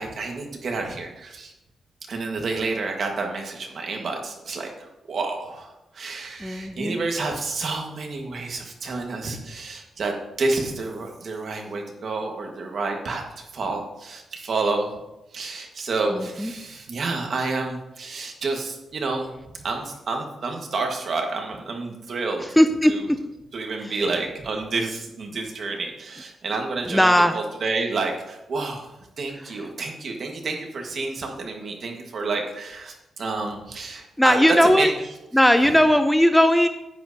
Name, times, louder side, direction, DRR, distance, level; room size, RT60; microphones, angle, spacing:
voice 1, 0.0-1.5 2.1-14.9 15.3-19.3 19.6-22.4 22.8-23.1 23.5-28.9 29.2-34.9 35.6-35.8, right 3 dB, 50° right, 2 dB, 1.5 m, -29 dB
voice 2, 6.4-7.0 16.1-16.5 22.4-23.2 23.8-23.9 26.9-27.4 34.2-34.9 35.3-36.7, equal, 5° left, 8 dB, 0.4 m, -18 dB
10.0 x 8.8 x 2.8 m, 0.94 s
wide cardioid pair, 135°, 0 cm